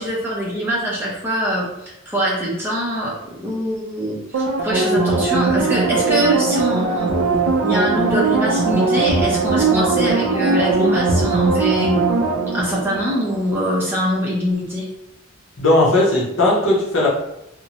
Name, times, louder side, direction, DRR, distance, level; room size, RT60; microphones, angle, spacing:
voice 1, 0.0-12.0 12.5-14.8, equal, 10° right, -5 dB, 0.6 m, -23 dB
sound 1, 4.3-13.7 14.1-14.2, right 3 dB, 80° right, 0.4 m, -19 dB
voice 2, 15.6-17.1, left 1 dB, 65° left, -4 dB, 0.8 m, -16 dB
2.6 x 2.1 x 2.8 m, 0.87 s
head